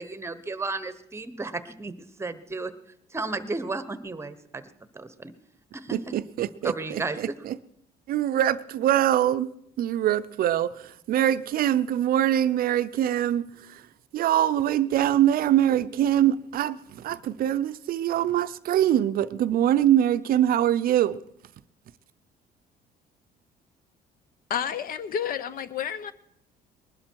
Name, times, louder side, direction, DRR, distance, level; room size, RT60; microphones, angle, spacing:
voice 1, 0.0-2.7 3.1-5.3 5.7-6.0 6.6-7.2, right 3 dB, 15° right, 1.0 m, -33 dB
voice 2, 5.9-7.6 8.1-9.5 9.8-13.8 14.1-21.2, right 11 dB, 60° right, 0.6 m, -23 dB
voice 3, 24.5-26.1, left 8 dB, 55° left, 0.8 m, -30 dB
20.5 x 12.0 x 4.6 m
cardioid pair, 110°, 17 cm